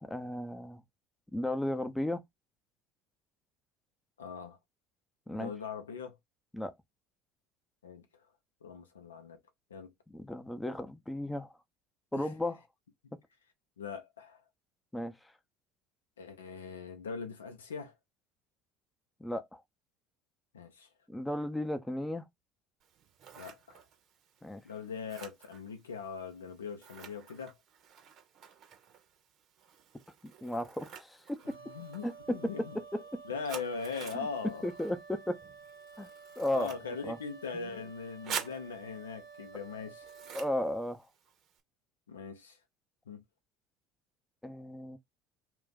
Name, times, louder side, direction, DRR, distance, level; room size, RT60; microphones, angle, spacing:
voice 1, 0.0-0.8 1.3-2.2 5.3-5.5 6.5-6.7 10.1-11.5 12.1-12.6 14.9-15.1 19.2-19.6 21.1-22.3 24.4-24.6 30.4-31.2 32.0-32.1 32.4-32.5 32.9-33.0 34.6-35.4 36.0-36.1 36.4-36.7 37.1-37.2 37.5-37.7 40.3-41.0 44.4-45.0, left 1 dB, 10° left, 0.6 m, -34 dB
voice 2, 4.2-4.6 5.3-6.2 7.8-8.0 8.6-9.4 9.7-9.9 12.1-12.3 13.8-14.4 16.2-17.9 20.5-20.9 23.4-23.8 24.6-27.5 31.6-32.8 33.2-34.7 36.5-40.1 42.1-42.6 43.1-43.2, left 5 dB, 80° left, 0.6 m, -41 dB
Scissors, 22.8-41.6, right 7 dB, 50° right, 0.7 m, -49 dB
Wind instrument woodwind instrument, 31.4-40.5, right 5 dB, 85° right, 0.9 m, -52 dB
2.4 x 2.3 x 3.8 m
figure-of-eight pair, 65°, 0 cm